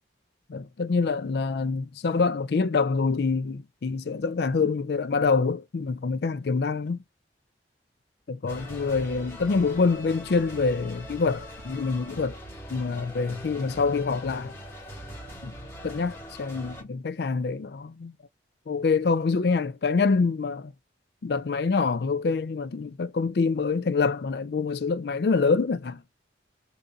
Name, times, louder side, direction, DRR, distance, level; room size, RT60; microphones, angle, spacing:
voice 1, 0.5-7.0 8.3-12.4 12.7-14.5 15.4-15.5 15.8-18.2 18.7-20.7 21.2-26.0, left 4 dB, 60° left, 0.4 m, -26 dB
sound 1, 8.5-16.8, equal, 15° left, 1.7 m, -42 dB
3.8 x 2.7 x 3.5 m
head